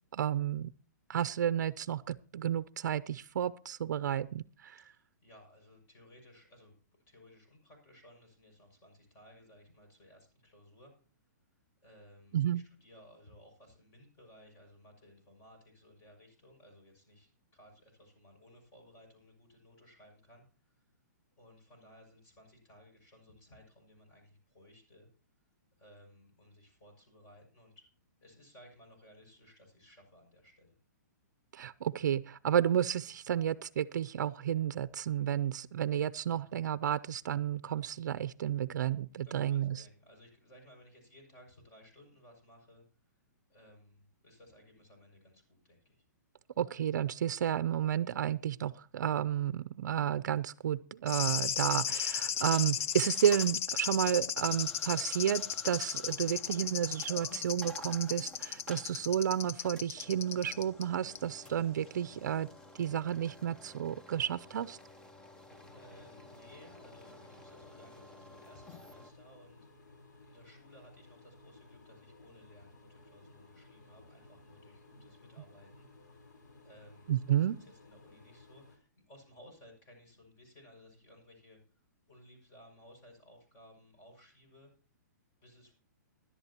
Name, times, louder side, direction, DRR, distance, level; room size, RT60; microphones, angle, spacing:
voice 1, 0.1-0.7 1.1-4.8 12.3-12.6 31.5-39.8 46.6-62.5 62.8-64.8 77.1-77.6, right 10 dB, 70° right, 15 dB, 0.5 m, -31 dB
voice 2, 4.8-6.7 7.1-10.9 11.8-20.9 21.4-25.1 25.8-27.9 28.2-30.7 39.2-43.1 43.5-46.0 65.2-76.3 76.6-81.6 82.1-84.7 85.4-85.7, equal, 25° left, 2 dB, 6.1 m, -59 dB
sound 1, 51.1-60.8 61.2-61.3, left 9 dB, 45° left, 0.7 m, -35 dB
sound 2, 52.2-69.1, left 1 dB, 10° left, 0.8 m, -53 dB
sound 3, 65.5-78.8, left 2 dB, 80° left, 3.9 m, -58 dB
20.0 x 11.0 x 2.9 m, 0.39 s
hypercardioid pair, 155°, 10 cm